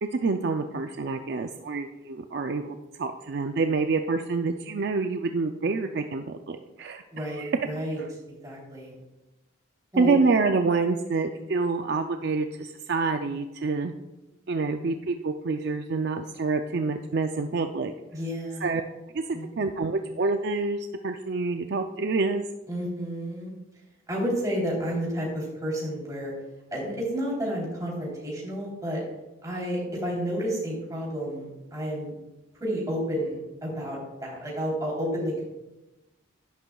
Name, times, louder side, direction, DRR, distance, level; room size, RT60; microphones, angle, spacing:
voice 1, 0.0-7.6 10.0-13.9 14.5-17.9 18.6-18.8 19.1-22.5, right 4 dB, 55° right, 6 dB, 0.4 m, -27 dB
voice 2, 7.1-8.0 8.4-8.9 9.9-10.1 18.1-18.7 19.3-19.5 22.7-23.5 24.1-26.3 26.7-29.0 29.4-32.1 32.6-35.4, equal, 20° right, -4 dB, 3.4 m, -31 dB
11.0 x 11.0 x 2.3 m, 1.0 s
head